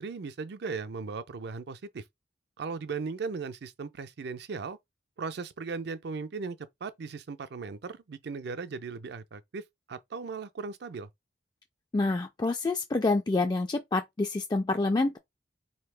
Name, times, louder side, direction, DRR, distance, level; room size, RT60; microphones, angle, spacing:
voice 1, 0.0-2.0 2.6-4.8 5.2-9.6 9.9-11.1, right 4 dB, 60° right, 0.5 m, -37 dB
voice 2, 11.9-15.2, left 3 dB, 20° left, 0.3 m, -27 dB
4.1 x 2.8 x 3.3 m
head